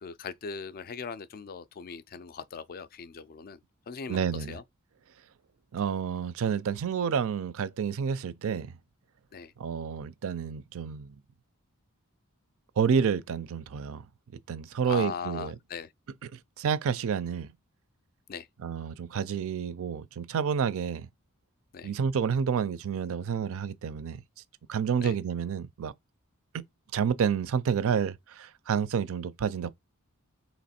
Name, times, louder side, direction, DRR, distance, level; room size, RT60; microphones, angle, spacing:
voice 1, 0.0-3.6 3.9-4.6 9.3-9.5 14.8-15.9 18.3-18.5 21.7-21.9 25.0-25.2, left 6 dB, 45° left, 0.4 m, -39 dB
voice 2, 4.1-4.6 5.7-8.7 9.6-11.1 12.8-14.0 14.5-15.5 16.6-17.5 18.6-21.1 21.8-24.2 24.7-25.9 26.9-29.7, right 7 dB, 65° right, 0.4 m, -29 dB
3.0 x 2.9 x 4.2 m
head